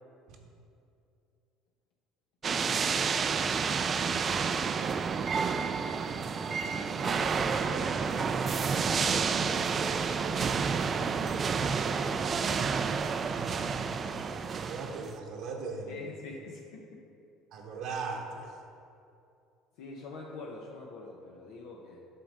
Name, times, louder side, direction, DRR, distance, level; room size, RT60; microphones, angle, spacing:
sound 1, 2.4-15.1, right 5 dB, 35° right, 0.4 m, -30 dB
voice 1, 2.5-2.9 5.4-6.0 6.5-12.9 15.9-17.1 19.8-22.1, left 3 dB, 75° left, -1 dB, 0.7 m, -47 dB
voice 2, 13.2-16.1 17.5-18.5, right 4 dB, 65° right, 1 dB, 1.0 m, -39 dB
8.3 x 3.7 x 6.4 m, 2.6 s
hypercardioid pair, 75°, 0 cm